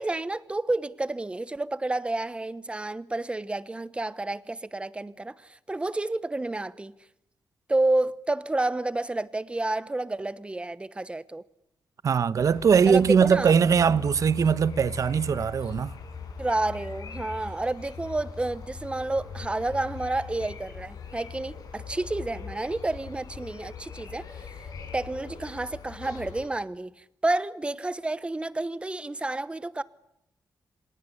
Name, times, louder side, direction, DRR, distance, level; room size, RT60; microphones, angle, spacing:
voice 1, 0.0-7.0 7.7-11.4 12.9-13.6 16.4-24.5 24.9-29.8, right 2 dB, 15° right, 1.0 m, -30 dB
voice 2, 12.0-16.0, right 6 dB, 55° right, 1.0 m, -21 dB
sound 1, 12.4-26.5, left 5 dB, 70° left, 5.8 m, -41 dB
26.5 x 18.5 x 9.9 m
wide cardioid pair, 125°, 7 cm